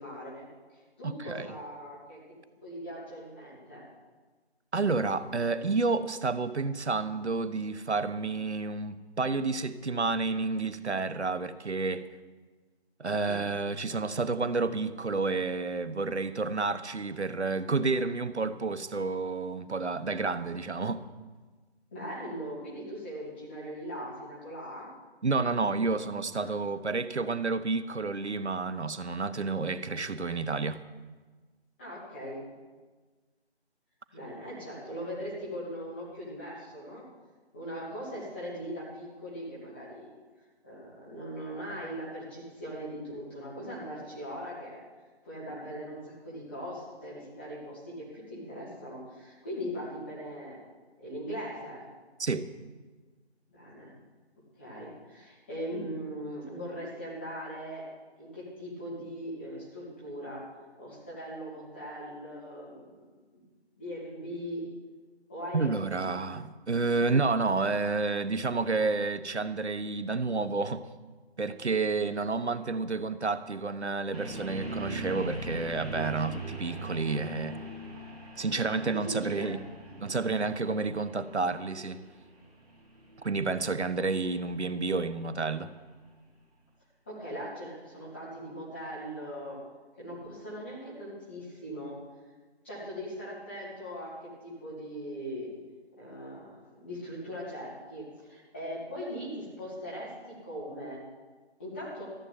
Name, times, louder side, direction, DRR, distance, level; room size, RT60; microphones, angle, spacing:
voice 1, 0.0-2.2 2.6-3.8 13.3-13.4 21.9-24.9 26.4-26.5 31.8-32.4 34.1-37.1 37.5-40.1 40.6-44.8 45.2-50.6 51.0-51.8 53.5-53.9 54.6-57.9 58.2-60.4 60.8-63.0 63.8-64.7 65.3-66.2 78.7-79.5 79.8-80.0 87.1-89.6 90.0-92.0 92.6-95.5 96.0-101.0 101.6-102.0, equal, 10° left, 2.5 m, -40 dB
voice 2, 1.0-1.5 4.7-12.1 13.0-21.0 25.2-30.8 52.2-52.5 65.5-70.9 71.4-77.5 78.4-79.6 80.0-82.0 83.2-85.7, right 3 dB, 85° right, 1.1 m, -30 dB
sound 1, 74.1-86.1, right 1 dB, 35° right, 3.7 m, -42 dB
14.5 x 8.2 x 9.3 m
figure-of-eight pair, 170°, 33 cm